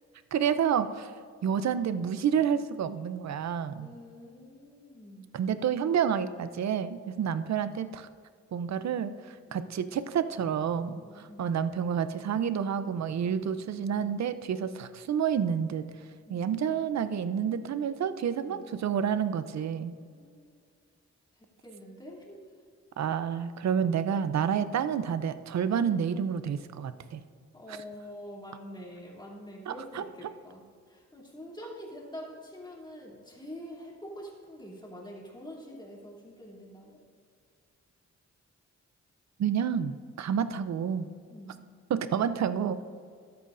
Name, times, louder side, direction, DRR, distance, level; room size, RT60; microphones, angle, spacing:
voice 1, 0.3-1.1 1.4-3.9 5.3-8.1 8.5-15.9 16.3-19.9 23.0-27.2 27.7-27.8 29.7-30.0 39.4-41.1 41.9-42.8, right 8 dB, 65° right, 12 dB, 0.6 m, -29 dB
voice 2, 3.8-5.3 9.5-9.7 11.0-11.5 13.2-13.5 13.9-14.3 14.6-14.8 16.3-17.7 18.4-18.6 20.1-20.5 21.3-22.4 27.5-37.0 41.3-41.6, equal, 15° left, -4 dB, 2.8 m, -46 dB
14.0 x 12.0 x 2.6 m, 2.1 s
wide cardioid pair, 120°, 29 cm